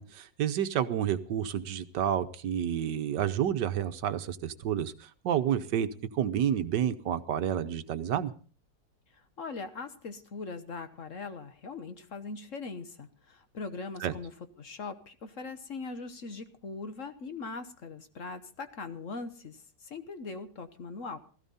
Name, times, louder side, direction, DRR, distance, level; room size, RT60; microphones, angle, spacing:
voice 1, 0.0-4.9 5.2-5.9 6.1-8.3 14.0-14.1, right 9 dB, 75° right, 11 dB, 1.5 m, -29 dB
voice 2, 9.4-14.3 14.6-21.2, left 4 dB, 50° left, 9 dB, 1.3 m, -41 dB
16.0 x 14.5 x 4.1 m, 0.40 s
omnidirectional pair, 1.9 m